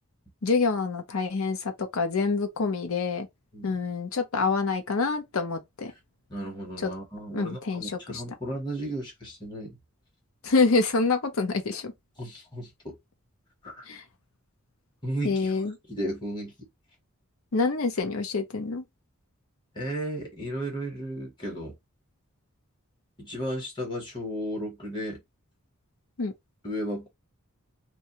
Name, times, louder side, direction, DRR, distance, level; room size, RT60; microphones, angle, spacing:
voice 1, 0.4-3.3 3.6-5.9 7.3-8.2 10.4-11.9 13.9-14.0 15.2-15.7 17.5-18.8 26.2-26.3, left 4 dB, 75° left, 0.6 m, -26 dB
voice 2, 6.3-9.8 12.2-13.0 13.6-13.9 15.0-15.5 15.9-16.5 19.7-21.7 23.2-25.2 26.6-27.1, right 1 dB, 20° left, 1.0 m, -34 dB
2.6 x 2.3 x 2.9 m
head